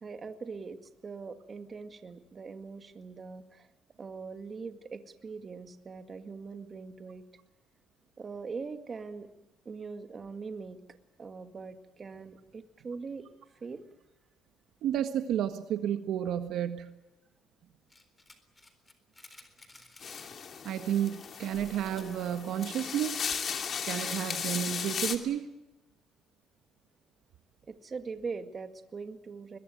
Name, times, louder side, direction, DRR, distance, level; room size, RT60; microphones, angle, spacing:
voice 1, 0.0-3.7 4.0-7.3 8.2-9.3 9.7-10.8 11.2-13.8 27.7-29.6, right 4 dB, 35° right, 7 dB, 2.1 m, -42 dB
voice 2, 14.8-16.9 20.6-23.3 23.8-25.5, right 10 dB, 75° right, 8 dB, 1.6 m, -31 dB
sound 1, 17.9-20.5 20.9-21.0 21.2-23.5, left 2 dB, 15° left, 4.0 m, -55 dB
sound 2, 20.0-25.2, left 7 dB, 50° left, 2.7 m, -36 dB
22.5 x 21.0 x 9.4 m, 0.95 s
cardioid pair, 105°, 0 cm